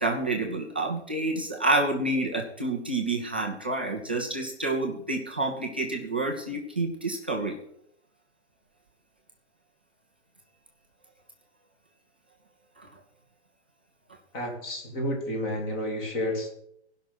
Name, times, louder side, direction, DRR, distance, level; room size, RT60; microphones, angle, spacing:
voice 1, 0.0-7.5 12.8-12.9, right 2 dB, 10° right, -1 dB, 0.4 m, -28 dB
voice 2, 14.3-16.5, left 1 dB, 20° left, 2 dB, 2.7 m, -30 dB
16.5 x 5.8 x 8.1 m, 0.71 s
hypercardioid pair, 170°, 34 cm